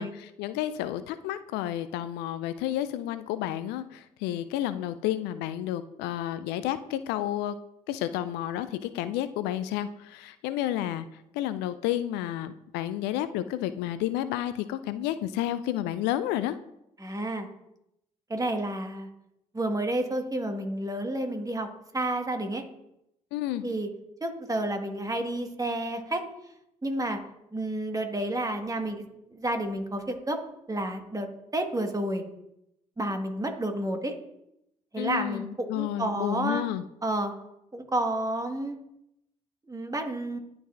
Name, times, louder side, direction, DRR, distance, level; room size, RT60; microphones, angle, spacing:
voice 1, 0.0-7.6 7.9-11.1 11.3-16.6 23.3-23.6 35.0-36.8, left 12 dB, 70° left, 13 dB, 0.4 m, -31 dB
voice 2, 17.0-17.5 18.3-19.1 19.5-21.7 21.9-22.6 23.6-23.9 24.2-26.3 26.8-27.2 27.5-29.0 29.3-30.4 30.7-32.2 33.0-34.1 34.9-36.6 37.0-37.3 37.7-38.8 39.7-40.4, right 1 dB, 20° right, 6 dB, 1.4 m, -30 dB
11.0 x 4.7 x 2.4 m, 0.82 s
figure-of-eight pair, 40°, 18 cm